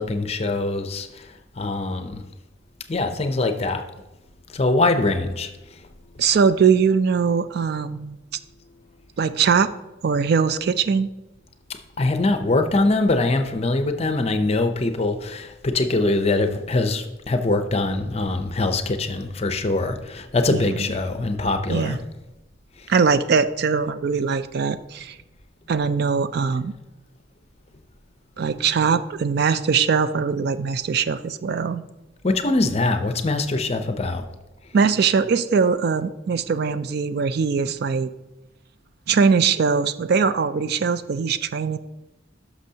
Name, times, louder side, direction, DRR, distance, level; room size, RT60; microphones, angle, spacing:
voice 1, 0.0-2.2 2.9-3.8 4.5-5.8 12.0-22.0 22.8-22.9 32.2-34.2, left 2 dB, 30° left, 7 dB, 0.5 m, -23 dB
voice 2, 6.2-8.2 9.2-9.7 10.0-11.1 20.5-20.8 21.7-22.0 22.9-25.2 25.7-26.7 28.4-31.8 34.7-38.1 39.1-41.8, right 5 dB, 50° right, 13 dB, 0.3 m, -21 dB
11.5 x 6.1 x 2.8 m, 1.0 s
head